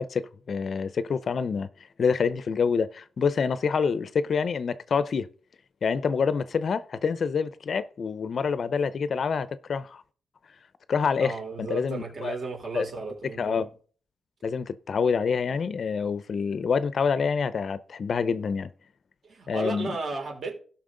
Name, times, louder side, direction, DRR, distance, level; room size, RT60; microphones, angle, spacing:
voice 1, 0.0-1.7 2.0-5.3 5.8-10.0 10.9-12.4 12.7-12.9 13.4-13.7 14.4-18.7 19.5-20.0, left 5 dB, 50° left, 0.5 m, -27 dB
voice 2, 11.2-13.6 19.3-20.5, right 3 dB, 45° right, 3.5 m, -34 dB
16.5 x 5.8 x 3.8 m
wide cardioid pair, 135°, 0 cm